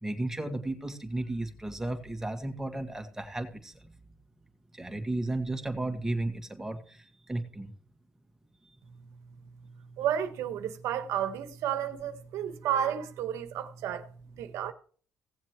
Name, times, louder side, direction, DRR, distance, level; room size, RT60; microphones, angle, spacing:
voice 1, 0.0-3.9 4.7-7.7, right 2 dB, 10° right, 2.1 m, -34 dB
voice 2, 10.0-14.0 14.4-14.7, right 9 dB, 85° right, 1.4 m, -31 dB
17.5 x 7.3 x 3.1 m
cardioid pair, 90°, 5 cm